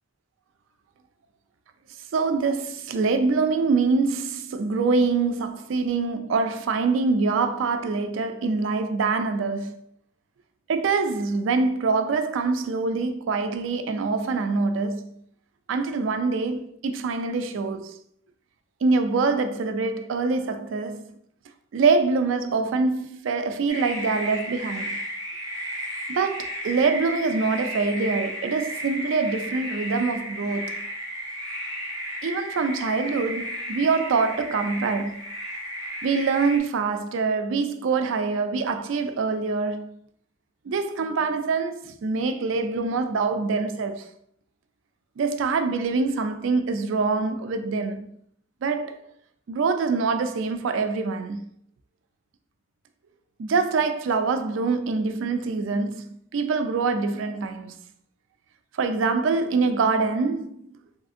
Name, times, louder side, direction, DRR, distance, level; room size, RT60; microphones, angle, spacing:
voice 1, 2.1-9.8 10.7-15.1 15.7-17.9 18.8-21.1 21.7-25.0 26.1-30.8 32.2-35.2 36.0-40.0 40.7-44.1 45.2-48.1 48.6-49.0 49.5-51.5 53.4-57.8 58.8-60.6, right 4 dB, 80° right, 0.3 m, -25 dB
sound 1, 23.7-36.6, equal, 20° right, 0.6 m, -34 dB
3.4 x 2.5 x 2.4 m
head